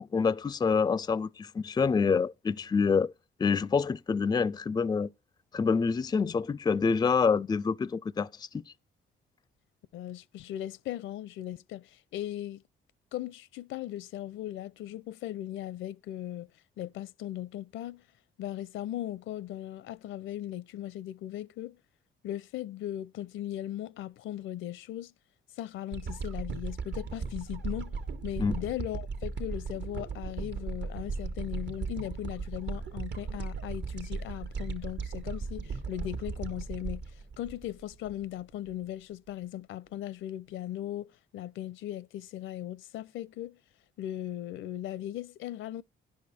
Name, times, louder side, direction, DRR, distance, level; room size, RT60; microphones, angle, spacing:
voice 1, 0.0-3.1 3.4-5.1 5.5-8.6 28.4-28.5, left 5 dB, 20° left, 0.4 m, -27 dB
voice 2, 9.9-12.6 13.1-16.5 16.8-18.0 18.4-21.8 22.2-25.1 25.6-28.0 28.2-37.0 37.4-43.6 44.0-45.8, left 13 dB, 80° left, 0.6 m, -38 dB
sound 1, 25.9-38.2 38.7-38.8, right 4 dB, 60° right, 1.3 m, -37 dB
10.5 x 6.6 x 4.3 m
cardioid pair, 90°, 20 cm